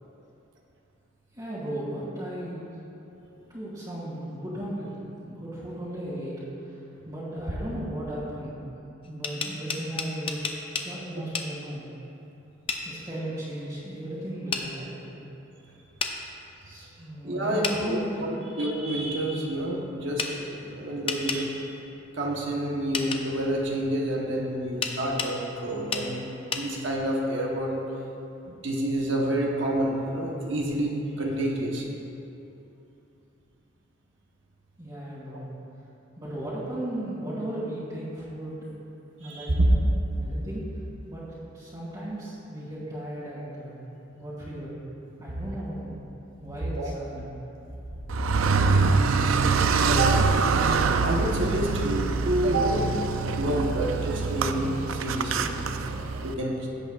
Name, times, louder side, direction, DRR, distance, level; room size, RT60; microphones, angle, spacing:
voice 1, 1.3-2.6 3.5-4.9 5.2-6.4 6.6-8.6 9.0-10.4 10.8-11.9 12.9-15.3 16.6-18.5 34.8-35.5 36.2-38.7 39.2-39.5 40.1-40.7 41.1-43.8 44.2-44.7 45.2-46.0 46.4-47.3, right 1 dB, 20° right, -12 dB, 2.0 m, -36 dB
sound 1, 9.0-10.9 11.3-11.5 12.7-12.8 14.5-14.7 16.0-16.1 17.6-17.8 20.2-20.3 21.1-21.4 22.9-23.2 24.8-25.3 25.9-26.1 26.5-26.7, left 5 dB, 25° left, 0.5 m, -30 dB
voice 2, 17.2-21.7 22.1-27.8 28.5-31.8 39.2-39.7 46.7-46.9 49.9-50.1 51.0-52.9 53.3-55.5 56.2-56.6, right 1 dB, 70° right, -2 dB, 1.0 m, -28 dB
Car, 48.1-56.3, right 4 dB, 85° right, 0.4 m, -24 dB
16.0 x 8.1 x 2.4 m, 2.9 s
head